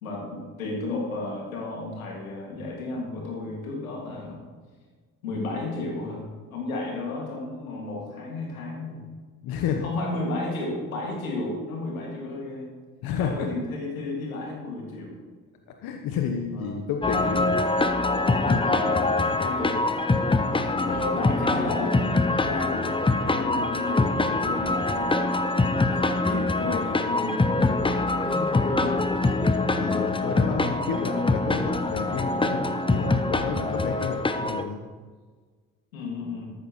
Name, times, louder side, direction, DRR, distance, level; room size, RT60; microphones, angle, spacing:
voice 1, 0.0-4.4 5.2-9.1 9.8-12.7 13.2-15.2 16.5-16.8 18.0-19.8 20.5-23.0 23.3-25.3 25.9-29.0 35.9-36.5, left 2 dB, 85° left, -1 dB, 2.4 m, -33 dB
voice 2, 9.4-9.8 13.0-13.5 15.8-17.6 20.7-21.0 23.4-23.7 29.7-34.8, left 6 dB, 60° left, 4 dB, 1.2 m, -31 dB
sound 1, 17.0-34.6, left 2 dB, 15° left, 0.8 m, -24 dB
13.5 x 12.5 x 3.2 m, 1.5 s
hypercardioid pair, 55°, 41 cm